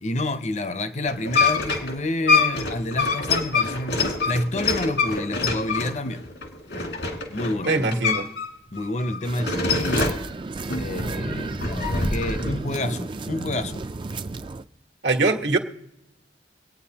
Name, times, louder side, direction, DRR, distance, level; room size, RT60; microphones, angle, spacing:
voice 1, 0.0-6.2 7.3-8.0 8.7-10.2 10.8-13.8, left 1 dB, 40° left, 0.6 m, -29 dB
sound 1, 1.1-8.5 8.8-10.3 10.7-12.5, left 4 dB, 80° left, 2.1 m, -25 dB
voice 2, 7.6-8.2 15.0-15.6, right 3 dB, 80° right, 1.3 m, -22 dB
sound 2, 9.2-14.6, right 3 dB, 25° right, 0.4 m, -33 dB
24.5 x 9.2 x 2.9 m
head